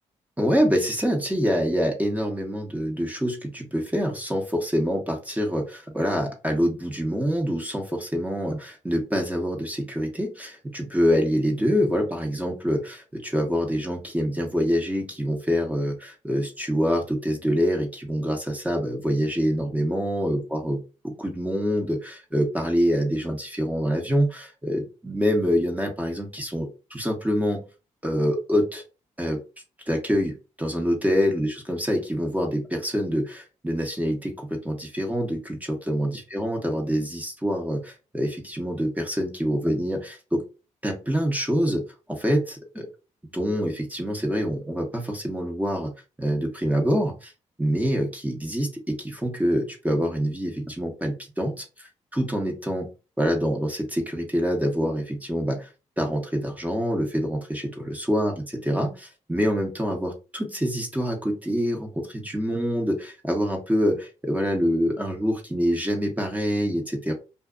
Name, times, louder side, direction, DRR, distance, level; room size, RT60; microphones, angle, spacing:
voice 1, 0.4-20.8 21.0-27.6 28.0-28.8 29.2-29.4 29.9-40.4 40.8-41.8 42.1-42.9 43.3-45.9 46.2-47.3 47.6-52.9 53.2-55.7 56.0-67.1, equal, 10° right, 2 dB, 0.9 m, -26 dB
2.5 x 2.4 x 2.4 m, 0.31 s
cardioid pair, 65°, 14 cm